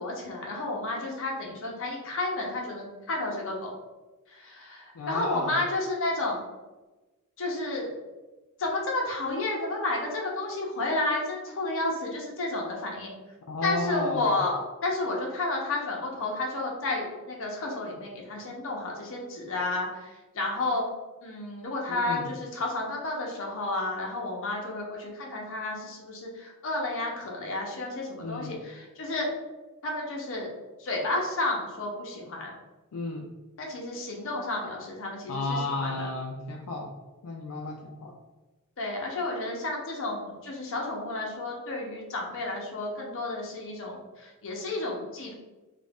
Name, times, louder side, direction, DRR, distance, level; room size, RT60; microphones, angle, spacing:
voice 1, 0.0-3.7 4.3-6.4 7.4-7.9 8.6-13.1 13.6-20.9 21.2-29.3 29.8-30.5 30.8-32.5 33.6-36.1 38.8-45.3, left 2 dB, 60° left, -1 dB, 0.8 m, -31 dB
voice 2, 4.9-5.5 13.5-14.4 21.9-22.3 28.2-28.5 32.9-33.2 35.3-36.9 37.2-38.1, left 2 dB, 80° left, -1 dB, 0.4 m, -33 dB
2.8 x 2.6 x 3.4 m, 1.2 s
head